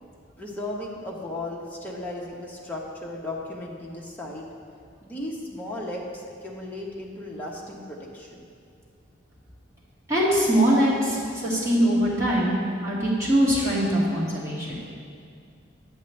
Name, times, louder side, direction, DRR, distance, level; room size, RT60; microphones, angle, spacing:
voice 1, 0.4-4.5 5.0-8.4, left 1 dB, 10° left, -3 dB, 0.9 m, -35 dB
voice 2, 10.1-12.5 12.8-14.8, equal, 15° right, -9 dB, 1.9 m, -22 dB
8.2 x 7.9 x 3.2 m, 2.4 s
head